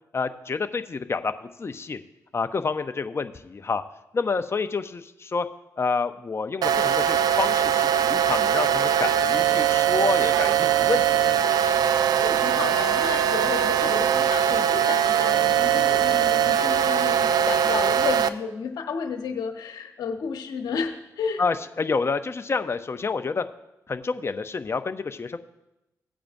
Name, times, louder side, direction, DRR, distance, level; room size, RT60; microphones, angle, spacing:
voice 1, 0.1-1.3 1.6-2.0 2.3-3.8 4.1-5.5 5.8-11.4 21.4-23.4 23.9-25.4, left 4 dB, 40° left, 9 dB, 0.6 m, -28 dB
sound 1, 6.6-18.3, right 9 dB, 80° right, 0.5 m, -21 dB
voice 2, 12.2-21.4, left 6 dB, 80° left, 5 dB, 1.1 m, -32 dB
17.0 x 8.6 x 2.6 m, 0.93 s
cardioid pair, 55°, 7 cm